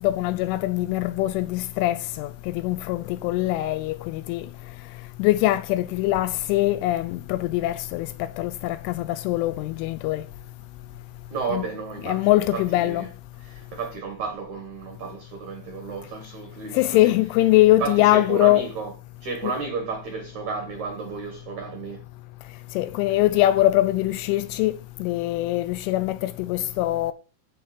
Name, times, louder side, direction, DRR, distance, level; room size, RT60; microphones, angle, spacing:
voice 1, 0.0-4.5 5.2-10.2 11.5-11.7 12.0-13.1 16.7-18.6 19.4-19.5 22.8-27.1, left 16 dB, 85° left, 2.9 m, -22 dB
voice 2, 11.3-13.1 13.4-17.1 17.8-18.9 19.2-22.0, right 5 dB, 85° right, 1.6 m, -32 dB
13.5 x 4.7 x 5.0 m
omnidirectional pair, 5.9 m